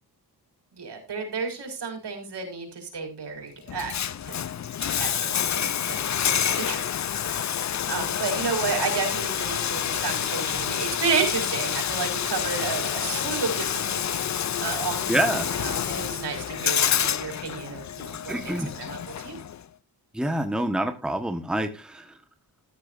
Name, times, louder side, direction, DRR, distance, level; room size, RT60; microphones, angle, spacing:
voice 1, 0.7-3.9 4.3-6.9 7.9-19.4, right 5 dB, 80° right, 4 dB, 5.2 m, -32 dB
Bathtub (filling or washing), 3.7-19.6, left 9 dB, 45° left, 0.5 m, -28 dB
voice 2, 15.1-15.6 18.3-18.7 20.1-22.0, right 1 dB, ahead, 7 dB, 1.3 m, -27 dB
14.0 x 13.5 x 2.6 m, 0.28 s
wide cardioid pair, 95°, 41 cm